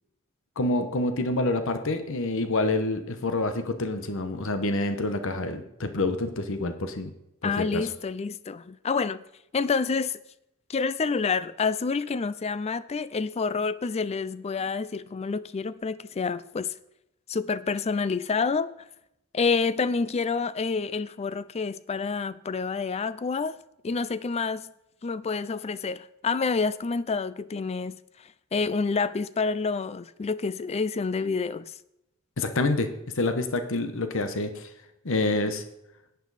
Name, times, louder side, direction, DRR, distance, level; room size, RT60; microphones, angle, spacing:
voice 1, 0.6-7.1 7.4-7.9 32.4-32.9 33.2-34.7 35.0-35.6, left 2 dB, 65° left, 1.0 m, -27 dB
voice 2, 7.4-9.2 9.5-10.2 10.7-16.7 17.3-18.7 19.3-23.6 23.8-24.7 25.0-28.0 28.5-31.7, left 4 dB, 30° left, 0.4 m, -28 dB
11.0 x 9.4 x 4.1 m
head